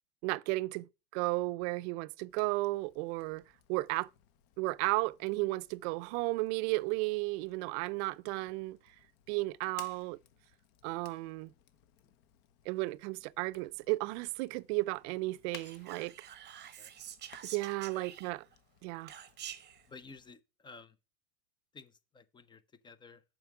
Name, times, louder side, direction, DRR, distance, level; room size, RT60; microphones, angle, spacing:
voice 1, 0.2-3.4 3.7-4.1 4.6-8.8 9.3-10.2 10.8-11.5 12.7-16.3 17.4-18.4 18.8-19.1, right 22 dB, 55° right, 0.5 m, -34 dB
Fire, 2.3-20.3, left 10 dB, 50° left, 1.1 m, -60 dB
Whispering, 15.5-18.5 19.1-19.8, right 10 dB, 25° right, 0.8 m, -47 dB
voice 2, 19.9-21.0 21.7-23.2, left 4 dB, 10° left, 0.4 m, -53 dB
7.5 x 5.2 x 5.8 m
supercardioid pair, 120°, 42 cm